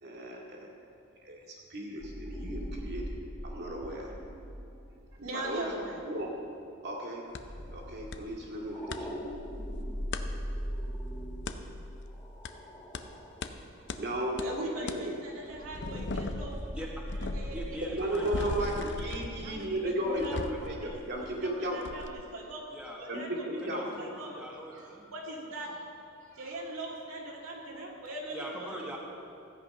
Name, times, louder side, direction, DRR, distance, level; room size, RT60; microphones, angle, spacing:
voice 1, 0.0-3.0 3.4-4.1 5.3-5.7 5.9-6.4 6.8-7.2 7.7-9.1 13.0-13.1 13.8-15.2 17.9-21.9 23.1-24.0, right 1 dB, 55° right, -2 dB, 2.2 m, -35 dB
sound 1, 2.0-6.2 7.4-13.4 13.9-14.0 15.5-19.0, equal, 15° left, 1.9 m, -40 dB
voice 2, 5.2-6.0 14.4-16.7 17.1-18.0 18.4-18.7 19.4-21.0 21.4-22.7 23.0-23.6 24.0-24.4 24.7-24.8 25.1-25.8 26.2-28.7, right 1 dB, 80° right, -3 dB, 2.1 m, -41 dB
sound 2, 7.3-7.4 8.1-8.2 8.5-9.0 10.1-10.2 11.5-11.6 12.4-12.5 12.9-13.0 13.4-13.5 13.9-14.0 14.4-14.5 14.9-15.0 15.5-21.5 21.8-22.1, left 3 dB, 60° left, 0.6 m, -38 dB
voice 3, 17.5-18.6 22.7-23.0 23.6-25.1 28.3-29.0, right 1 dB, 5° right, -3 dB, 1.3 m, -42 dB
14.0 x 8.2 x 5.4 m, 2.6 s
head